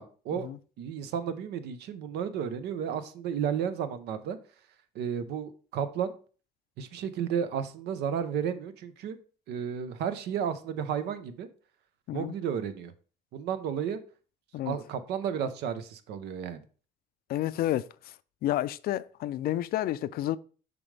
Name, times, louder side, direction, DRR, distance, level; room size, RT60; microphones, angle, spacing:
voice 1, 0.0-0.5 0.8-4.4 4.9-6.1 6.8-9.2 9.5-11.5 12.1-12.9 13.3-14.0 14.7-16.6, right 8 dB, 80° right, 0.9 m, -32 dB
voice 2, 17.3-17.9 18.4-20.4, left 13 dB, 65° left, 0.4 m, -30 dB
6.9 x 5.2 x 3.4 m
cardioid pair, 110°, 17 cm